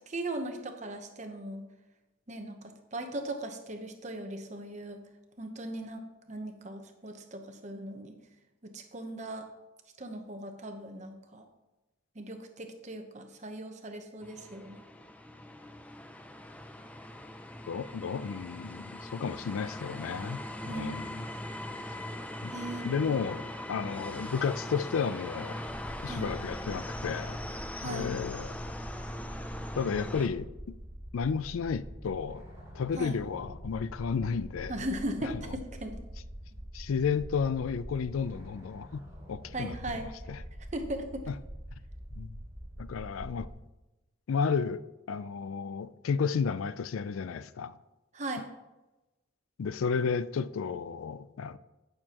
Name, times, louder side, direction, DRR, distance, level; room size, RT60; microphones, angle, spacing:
voice 1, 0.1-1.6 2.3-5.0 5.4-6.0 6.3-8.1 8.6-9.5 10.0-11.5 12.2-14.8 20.7-21.1 22.5-22.9 26.1-26.3 27.8-28.1 32.9-33.2 34.7-36.0 39.5-40.1 40.7-41.2 48.1-48.5, right 1 dB, 35° right, 0.9 m, -38 dB
sound 1, 14.2-30.3, left 1 dB, 5° left, 0.4 m, -41 dB
voice 2, 17.7-21.3 22.4-22.5 22.8-25.6 26.0-27.4 27.8-28.6 29.8-30.8 31.1-32.4 32.7-34.8 35.2-35.5 36.7-39.0 39.3-40.4 41.3-41.4 42.2-42.3 42.8-43.5 44.3-47.8 49.6-51.6, left 6 dB, 85° left, 0.4 m, -32 dB
sound 2, 25.6-43.5, equal, 15° right, 3.6 m, -45 dB
15.0 x 6.6 x 3.0 m
head